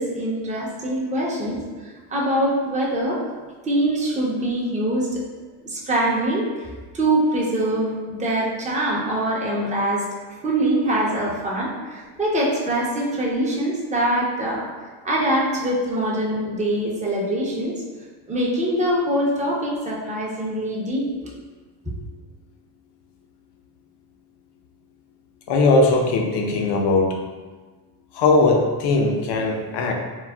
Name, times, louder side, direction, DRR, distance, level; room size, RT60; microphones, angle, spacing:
voice 1, 0.0-1.6 2.1-3.2 3.7-5.2 5.6-6.7 6.9-10.0 10.4-14.7 15.0-17.7 18.3-21.0 21.8-21.9, right 1 dB, 15° right, -4 dB, 0.7 m, -23 dB
voice 2, 25.5-27.2 28.1-29.9, left 3 dB, 55° left, 1 dB, 0.7 m, -19 dB
3.9 x 2.0 x 2.3 m, 1.4 s
supercardioid pair, 85°, 49 cm